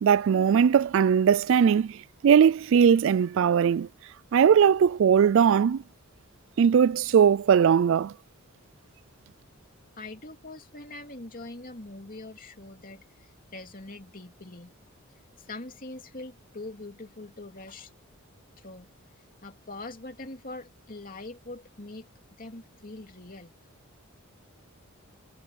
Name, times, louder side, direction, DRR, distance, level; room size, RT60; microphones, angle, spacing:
voice 1, 0.0-2.0 2.2-3.9 4.3-5.8 6.6-8.1, right 7 dB, 60° right, 0.3 m, -20 dB
voice 2, 9.9-14.7 15.4-17.9 18.6-18.9 19.4-22.1 22.4-23.5, left 2 dB, 40° left, 2.9 m, -43 dB
head